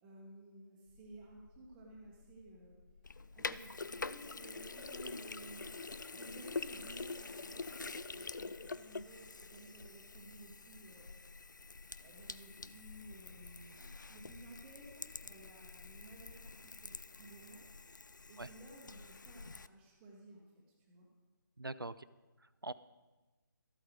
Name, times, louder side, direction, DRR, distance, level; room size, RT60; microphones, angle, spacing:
voice 1, 0.0-2.7 3.3-5.7 6.1-11.1 12.0-17.6 18.3-21.1, right 2 dB, 10° right, -2 dB, 1.3 m, -55 dB
sound 1, 0.8-16.5, left 5 dB, 35° left, 3.1 m, -63 dB
Sink (filling or washing), 3.0-19.7, left 4 dB, 60° left, 0.4 m, -46 dB
voice 2, 21.6-22.1 22.4-22.7, right 2 dB, 85° right, 16 dB, 0.5 m, -43 dB
13.0 x 8.5 x 4.7 m, 1.2 s
figure-of-eight pair, 155°, 11 cm